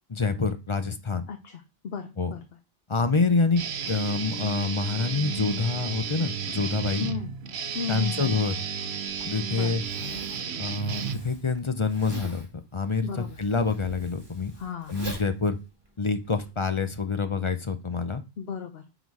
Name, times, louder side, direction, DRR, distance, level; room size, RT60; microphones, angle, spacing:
voice 1, 0.1-1.3 2.2-2.3 2.9-7.1 7.9-8.5 9.2-9.8 10.6-12.5 12.7-14.5 14.9-15.6 16.0-18.2, left 4 dB, 35° left, 9 dB, 0.6 m, -27 dB
voice 2, 1.3-2.4 7.0-7.3 7.7-8.4 9.5-9.7 13.0-13.4 14.6-15.0 18.4-18.8, left 6 dB, 70° left, 5 dB, 1.0 m, -34 dB
Guitar, 3.6-11.6, right 7 dB, 85° right, 1.0 m, -33 dB
Zipper (clothing), 9.1-16.5, right 1 dB, 25° right, 2.0 m, -44 dB
9.4 x 4.1 x 4.7 m, 0.29 s
omnidirectional pair, 1.1 m